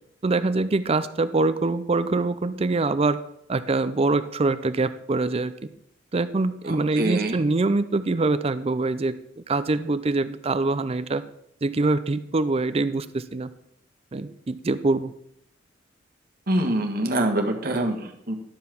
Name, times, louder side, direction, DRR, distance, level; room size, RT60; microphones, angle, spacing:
voice 1, 0.2-3.2 3.5-5.5 6.1-11.2 11.6-13.5 14.1-15.1, right 3 dB, 30° right, 13 dB, 0.5 m, -24 dB
voice 2, 6.7-7.5 16.5-18.3, right 1 dB, 50° right, 3 dB, 1.4 m, -25 dB
11.5 x 5.7 x 5.9 m, 0.73 s
head